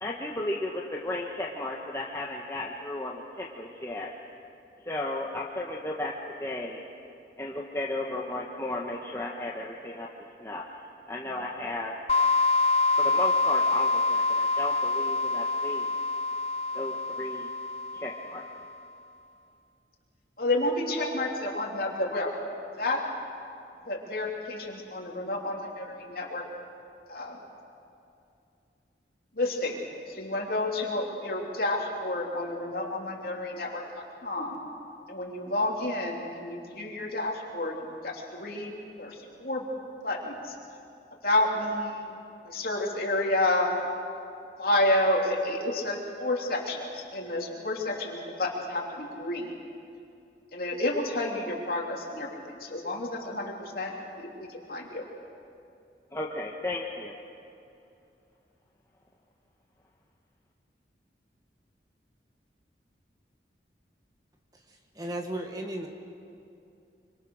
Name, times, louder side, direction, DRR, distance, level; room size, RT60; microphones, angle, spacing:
voice 1, 0.0-4.1 4.8-6.1 6.4-6.8 7.4-12.0 12.9-16.0 16.7-17.5 17.9-18.4 56.1-57.1, left 1 dB, 15° left, -3 dB, 1.4 m, -34 dB
sound 1, 12.1-18.6, left 3 dB, 35° left, 0.6 m, -26 dB
voice 2, 20.4-22.3 22.8-23.0 23.9-26.4 27.1-27.4 29.3-34.6 35.1-38.7 39.0-39.6 40.0-40.5 41.2-42.2 42.4-43.7 44.6-49.6 50.5-55.0, left 1 dB, 55° left, -1 dB, 3.5 m, -30 dB
voice 3, 64.7-65.9, right 1 dB, 20° right, 2 dB, 1.7 m, -35 dB
26.0 x 25.0 x 6.5 m, 2.6 s
head